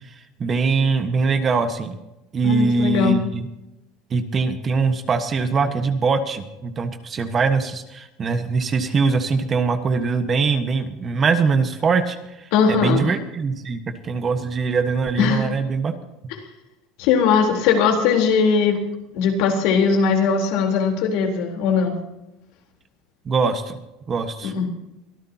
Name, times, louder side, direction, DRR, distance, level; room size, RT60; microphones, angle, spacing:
voice 1, 0.4-2.0 2.3-3.5 4.1-15.9 23.2-23.8 24.1-24.5, right 4 dB, 25° right, 8 dB, 1.4 m, -22 dB
voice 2, 2.4-3.2 12.5-13.1 15.2-15.5 17.0-18.8 19.1-22.0 24.4-24.7, left 6 dB, 70° left, 2 dB, 3.7 m, -19 dB
24.0 x 13.5 x 2.9 m, 0.93 s
cardioid pair, 140°, 0 cm